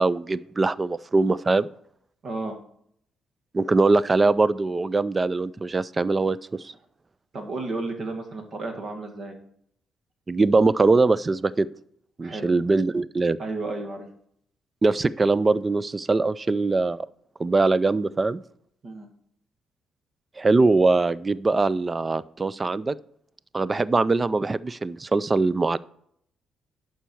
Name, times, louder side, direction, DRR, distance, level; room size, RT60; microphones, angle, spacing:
voice 1, 0.0-1.7 3.5-6.4 6.6-6.7 10.3-11.7 12.2-13.4 14.8-17.1 17.4-18.4 20.4-22.9 23.5-25.8, right 3 dB, 25° right, 19 dB, 0.3 m, -22 dB
voice 2, 2.2-2.6 7.3-9.3 12.2-12.5 13.4-14.1 18.8-19.1, right 2 dB, 50° right, 4 dB, 1.8 m, -32 dB
11.0 x 4.6 x 4.6 m, 0.68 s
cardioid pair, 90°, 0 cm